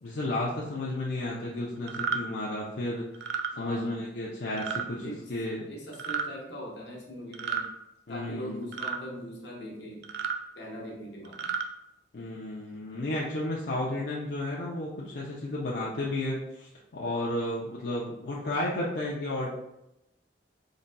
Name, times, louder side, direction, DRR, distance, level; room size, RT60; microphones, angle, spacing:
voice 1, 0.0-3.3 3.6-5.0 5.3-5.7 8.1-8.6 12.1-19.5, left 1 dB, 65° left, -5 dB, 0.6 m, -32 dB
sound 1, 1.9-2.2 3.1-3.5 4.6-4.9 5.9-6.3 7.3-7.7 8.7-9.0 10.0-10.4 11.2-11.7, right 6 dB, 65° right, 0.4 m, -32 dB
voice 2, 3.5-4.0 5.0-5.2 5.7-7.7 8.1-10.1 10.5-11.5, equal, 85° left, -2 dB, 1.1 m, -41 dB
4.1 x 3.9 x 2.2 m, 0.89 s
head